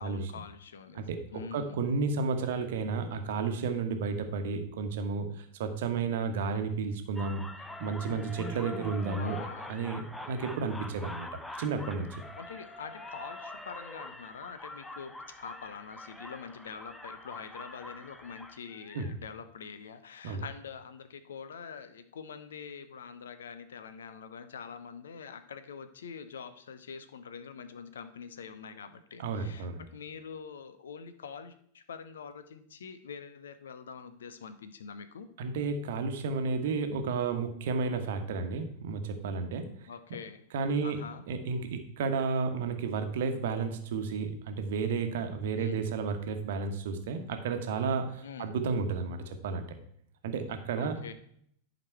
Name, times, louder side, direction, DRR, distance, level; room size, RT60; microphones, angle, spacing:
voice 1, 0.0-1.0 1.3-1.8 9.2-9.8 12.4-35.3 39.9-40.4 40.8-41.2 45.5-45.9 48.2-48.5 50.8-51.1, left 6 dB, 65° left, 11 dB, 0.7 m, -45 dB
voice 2, 1.5-7.4 7.8-9.4 9.7-10.0 10.3-11.3 11.6-12.2 18.9-19.1 20.2-20.4 29.2-29.9 35.4-39.6 40.5-41.0 41.3-49.7 50.2-51.0, right 4 dB, 55° right, 6 dB, 1.1 m, -32 dB
sound 1, 7.2-19.1, left 1 dB, 5° left, 0.7 m, -44 dB
10.5 x 5.2 x 4.5 m, 0.67 s
figure-of-eight pair, 90°, 0 cm